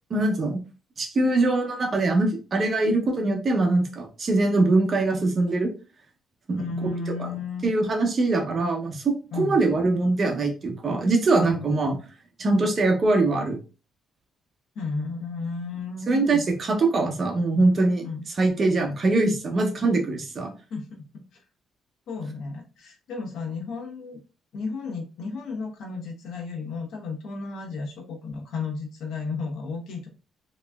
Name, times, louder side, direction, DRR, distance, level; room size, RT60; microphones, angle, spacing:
voice 1, 0.1-0.6 1.0-5.7 6.5-6.7 7.2-7.3 7.6-12.0 12.4-13.6 16.1-18.0 18.4-20.5, right 2 dB, 45° right, 3 dB, 1.0 m, -22 dB
voice 2, 6.6-7.7 9.3-9.6 14.7-16.4 18.0-18.3 20.7-20.9 21.1-21.2 22.1-24.2 24.5-30.1, left 4 dB, 75° left, 1 dB, 1.1 m, -33 dB
3.5 x 3.0 x 2.3 m, 0.33 s
cardioid pair, 90°, 0 cm